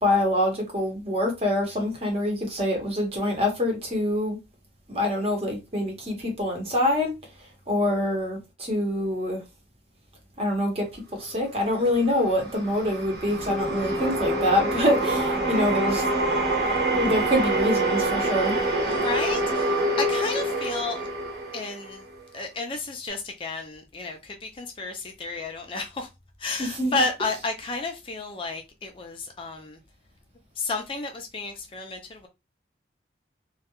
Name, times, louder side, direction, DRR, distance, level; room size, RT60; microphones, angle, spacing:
voice 1, 0.0-4.4 4.9-7.1 7.7-9.4 10.4-16.0 16.9-18.5 26.6-27.0, left 1 dB, 30° right, 0.8 m, -25 dB
sound 1, 11.9-22.2, right 2 dB, 55° right, 0.9 m, -26 dB
voice 2, 18.9-21.1 21.5-22.0 22.3-26.1 26.4-29.8 30.6-32.3, left 3 dB, 30° left, 0.3 m, -32 dB
2.2 x 2.1 x 2.9 m
head